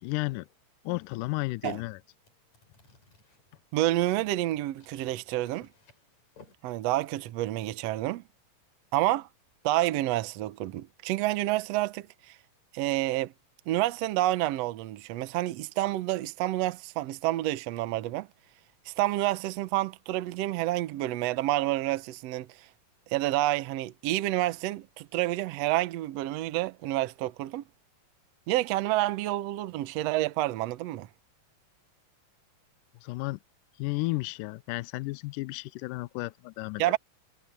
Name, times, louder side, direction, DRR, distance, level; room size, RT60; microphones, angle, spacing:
voice 1, 0.0-0.5 0.8-2.0 33.0-33.4 33.8-37.0, left 22 dB, 80° left, 2.1 m, -33 dB
sound 1, 1.6-6.6, left 4 dB, 55° left, 6.8 m, -60 dB
voice 2, 3.7-5.7 6.6-8.2 8.9-9.3 9.6-12.4 12.7-13.3 13.7-18.3 18.9-22.7 23.1-27.6 28.5-31.1 36.8-37.0, right 15 dB, 75° right, 1.5 m, -29 dB
omnidirectional pair, 4.0 m